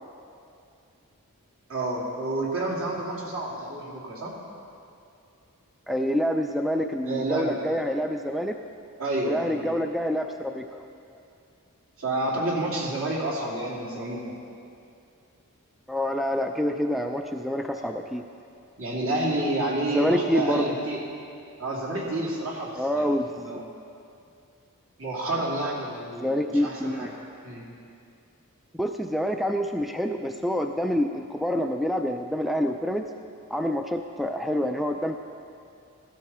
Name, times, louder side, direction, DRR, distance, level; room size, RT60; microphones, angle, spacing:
voice 1, 1.7-4.3 7.0-7.6 9.0-9.7 12.0-14.3 18.8-21.0 21.6-23.0 23.4-23.6 25.0-27.1 27.4-27.7, right 1 dB, 65° right, -4 dB, 2.8 m, -29 dB
voice 2, 5.9-8.6 9.2-10.6 15.9-18.2 19.9-20.6 22.8-23.6 26.2-27.1 28.8-33.0 33.5-35.2, equal, ahead, 4 dB, 0.3 m, -27 dB
16.0 x 12.5 x 4.3 m, 2.6 s
head